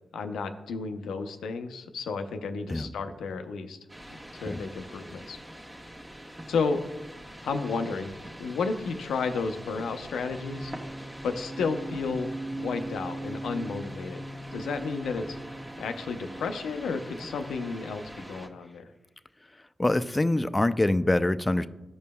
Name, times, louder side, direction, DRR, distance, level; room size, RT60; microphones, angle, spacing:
voice 1, 0.1-3.8 4.1-5.4 6.5-6.8 7.4-8.1 8.4-10.7 11.2-12.3 12.6-14.2 14.5-15.4 15.8-18.9, left 4 dB, 85° left, 7 dB, 0.5 m, -32 dB
sound 1, 3.9-18.5, right 1 dB, 25° right, 1.2 m, -41 dB
voice 2, 19.8-21.7, left 1 dB, 20° left, 12 dB, 0.4 m, -25 dB
12.5 x 5.3 x 2.2 m, 0.99 s
supercardioid pair, 50°, 0 cm